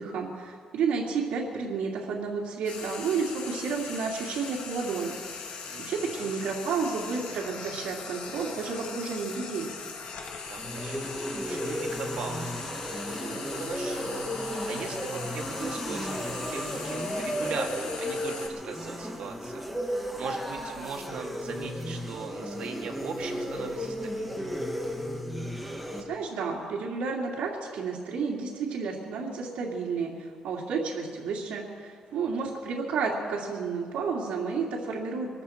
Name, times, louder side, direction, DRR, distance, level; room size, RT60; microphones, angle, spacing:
voice 1, 0.0-5.2 5.5-9.7 26.0-35.4, right 5 dB, 85° right, -5 dB, 2.5 m, -31 dB
Frying (food), 2.6-18.5, left 5 dB, 90° left, 2.2 m, -40 dB
voice 2, 5.7-6.3 10.5-11.0 11.3-12.6 13.1-24.5 32.1-32.3, right 5 dB, 60° right, 1 dB, 2.2 m, -40 dB
sound 1, 10.4-26.0, equal, ahead, 1.4 m, -34 dB
24.0 x 13.5 x 4.4 m, 2.1 s
cardioid pair, 170°, 2 cm